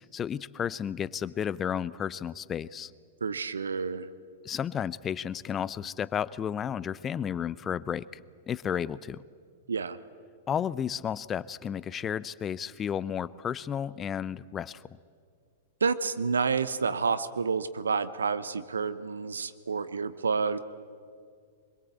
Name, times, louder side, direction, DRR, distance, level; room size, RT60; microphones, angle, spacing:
voice 1, 0.0-2.9 4.4-9.2 10.5-14.8, left 8 dB, 25° left, 19 dB, 0.6 m, -32 dB
voice 2, 3.2-4.1 9.7-10.0 15.8-20.6, right 5 dB, 75° right, 14 dB, 0.8 m, -29 dB
24.5 x 22.0 x 8.2 m, 2.2 s
figure-of-eight pair, 100°, 0 cm